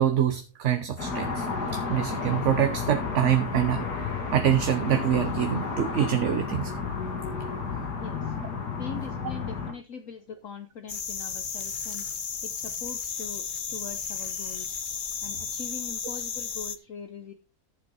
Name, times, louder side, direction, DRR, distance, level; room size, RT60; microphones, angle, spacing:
voice 1, 0.0-1.5 1.7-3.9 4.3-6.7, right 10 dB, 55° right, 8 dB, 1.1 m, -25 dB
sound 1, 1.0-9.7, left 4 dB, 90° left, 2.8 m, -32 dB
voice 2, 8.0-8.3 8.8-12.1 12.4-14.8 15.2-17.3, left 6 dB, 60° left, 8 dB, 1.2 m, -42 dB
sound 2, 10.9-16.8, left 6 dB, 40° left, 0.8 m, -34 dB
13.5 x 7.6 x 4.1 m, 0.31 s
omnidirectional pair, 1.7 m